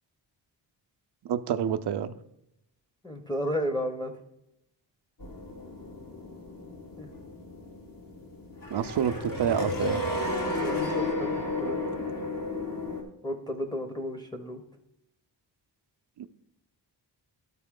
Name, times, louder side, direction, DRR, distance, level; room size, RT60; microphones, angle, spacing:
voice 1, 1.2-2.1 8.7-10.0 16.2-16.3, right 9 dB, 60° right, 10 dB, 0.6 m, -28 dB
voice 2, 3.0-4.1 7.0-7.1 10.4-12.1 13.2-14.6, equal, 10° left, 3 dB, 0.9 m, -33 dB
sound 1, 5.2-13.0, left 2 dB, 50° left, 1.4 m, -33 dB
12.0 x 4.2 x 3.7 m, 0.81 s
cardioid pair, 80°, 45 cm